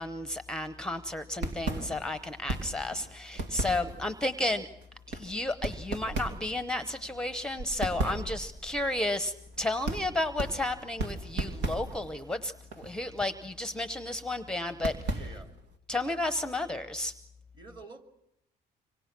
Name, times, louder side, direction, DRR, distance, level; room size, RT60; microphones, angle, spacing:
voice 1, 0.0-4.7 5.1-15.1 15.9-17.1, left 2 dB, 5° left, 11 dB, 0.9 m, -32 dB
sound 1, 1.3-15.7, right 2 dB, 85° right, 3.0 m, -37 dB
voice 2, 15.1-15.5 17.5-18.0, right 3 dB, 25° right, 6 dB, 2.8 m, -47 dB
27.0 x 25.0 x 6.1 m, 0.79 s
cardioid pair, 110°, 17 cm